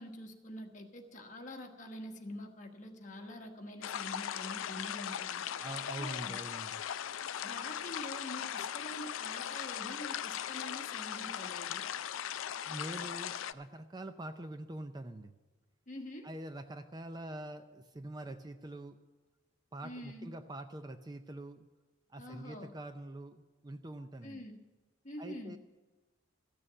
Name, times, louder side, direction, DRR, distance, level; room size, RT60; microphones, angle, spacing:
voice 1, 0.0-5.4 6.0-6.4 7.4-11.8 15.9-16.3 19.8-20.3 22.2-22.7 24.2-24.6 25.0-25.6, left 1 dB, 40° left, 3 dB, 1.3 m, -46 dB
sound 1, 3.8-13.5, left 9 dB, 90° left, 0.4 m, -39 dB
voice 2, 5.6-6.8 12.7-15.3 16.2-19.0 19.7-21.7 22.1-24.4 25.2-25.6, right 1 dB, 20° right, 8 dB, 0.5 m, -44 dB
14.0 x 6.9 x 8.7 m, 1.2 s
head